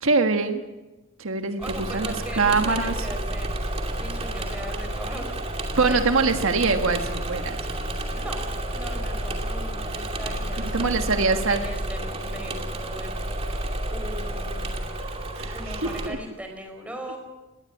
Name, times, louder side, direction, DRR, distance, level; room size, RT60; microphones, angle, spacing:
voice 1, 0.0-0.6 1.2-3.1 5.8-7.6 10.7-11.6 15.3-16.2, right 4 dB, 80° right, 6 dB, 1.5 m, -23 dB
voice 2, 1.6-3.5 3.9-6.0 8.1-8.5 8.7-13.6 13.9-14.9 15.5-17.2, equal, 5° right, 3 dB, 4.9 m, -39 dB
Engine / Mechanisms, 1.6-16.1, right 1 dB, 30° right, 2.6 m, -30 dB
20.5 x 17.5 x 8.5 m, 1.1 s
head